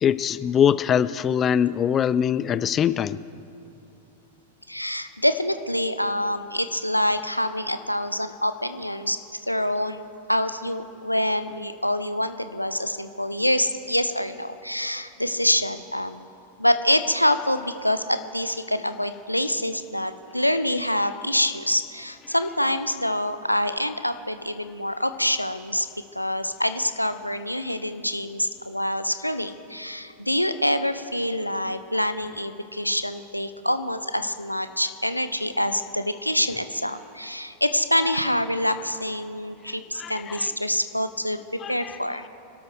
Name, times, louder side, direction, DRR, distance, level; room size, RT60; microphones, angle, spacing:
voice 1, 0.0-3.2 40.0-40.4 41.6-42.0, left 8 dB, 25° left, 16 dB, 0.4 m, -23 dB
voice 2, 4.7-16.2 16.6-25.9 26.1-42.3, left 1 dB, 90° left, 10 dB, 0.6 m, -26 dB
25.5 x 12.5 x 3.4 m, 2.9 s
figure-of-eight pair, 90°, 0 cm